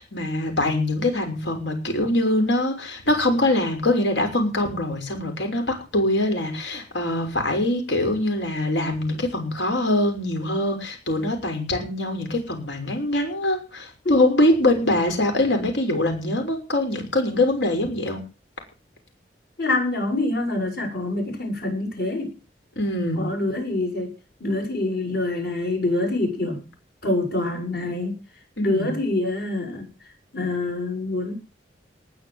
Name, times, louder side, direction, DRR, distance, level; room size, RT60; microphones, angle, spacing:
voice 1, 0.0-18.2 22.8-23.2 28.6-28.9, left 1 dB, 85° left, 4 dB, 6.0 m, -23 dB
voice 2, 19.6-22.3 23.1-24.1 24.4-26.6 27.0-28.2 28.6-29.9 30.3-31.3, left 2 dB, 65° left, 2 dB, 7.3 m, -25 dB
19.5 x 6.9 x 8.0 m, 0.36 s
head